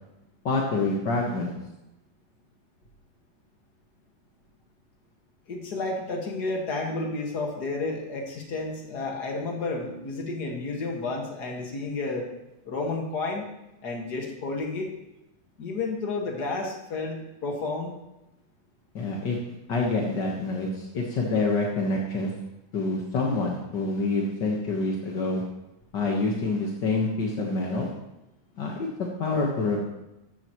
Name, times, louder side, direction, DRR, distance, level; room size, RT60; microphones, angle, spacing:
voice 1, 0.4-1.5 18.9-19.4 19.7-22.3 22.7-25.4 25.9-27.9 28.6-29.8, left 3 dB, 55° left, -1 dB, 1.2 m, -27 dB
voice 2, 5.5-12.3 12.6-13.5 13.8-14.9 15.6-17.9, left 3 dB, 40° left, 1 dB, 1.7 m, -31 dB
14.0 x 12.5 x 3.1 m, 0.93 s
omnidirectional pair, 4.1 m